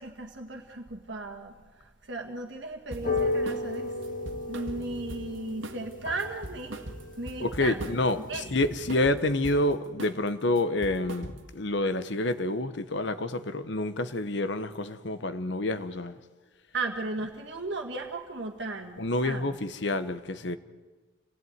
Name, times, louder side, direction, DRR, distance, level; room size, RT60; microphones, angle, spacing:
voice 1, 0.0-4.0 4.5-6.9 7.2-8.0 8.3-8.5 16.7-19.6, right 2 dB, 60° right, 1.8 m, -36 dB
sound 1, 2.9-8.9, left 2 dB, 40° left, 2.0 m, -35 dB
sound 2, 2.9-3.7 4.0-5.4 5.6-5.9 6.2-8.1 8.4-9.6 10.0-10.3 10.6-11.6, right 1 dB, 75° right, 1.9 m, -40 dB
voice 2, 7.4-16.2 19.0-20.6, left 2 dB, 60° left, 1.0 m, -28 dB
28.0 x 17.5 x 9.5 m
head